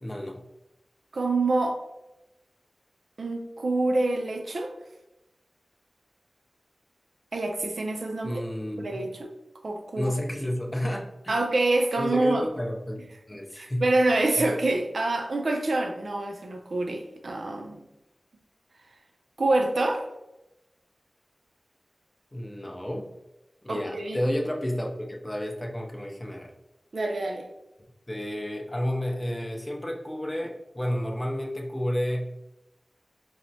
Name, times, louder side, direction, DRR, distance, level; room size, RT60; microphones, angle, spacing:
voice 1, 0.0-0.4 8.2-9.1 10.0-11.4 12.0-13.0 13.3-13.9 14.4-14.5 22.3-23.1 23.6-26.5 28.1-32.3, equal, 20° left, 1 dB, 0.5 m, -31 dB
voice 2, 1.1-1.8 3.2-4.7 7.3-8.4 8.7-9.3 9.6-10.1 11.3-12.5 13.5-17.8 19.4-20.1 23.7-24.2 26.9-27.5, right 2 dB, 75° right, 4 dB, 0.4 m, -26 dB
4.3 x 2.0 x 2.7 m, 0.94 s
wide cardioid pair, 60°, 0 cm